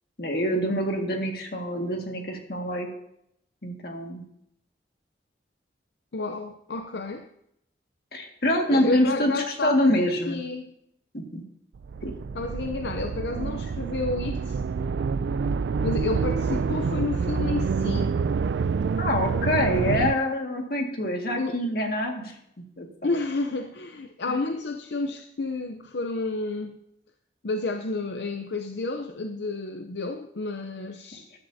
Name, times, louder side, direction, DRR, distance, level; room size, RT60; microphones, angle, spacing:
voice 1, 0.2-2.9 3.6-4.2 8.1-10.4 11.1-11.4 12.0-12.1 19.0-22.3 22.8-23.1, left 1 dB, 55° left, 2 dB, 1.9 m, -26 dB
voice 2, 6.1-7.3 8.7-10.7 12.3-14.6 15.8-18.1 21.4-21.6 23.0-26.8 27.4-31.3, left 3 dB, 80° left, 5 dB, 0.7 m, -30 dB
sound 1, 11.7-20.1, right 5 dB, 85° right, 0.4 m, -27 dB
14.0 x 11.5 x 2.8 m, 0.76 s
head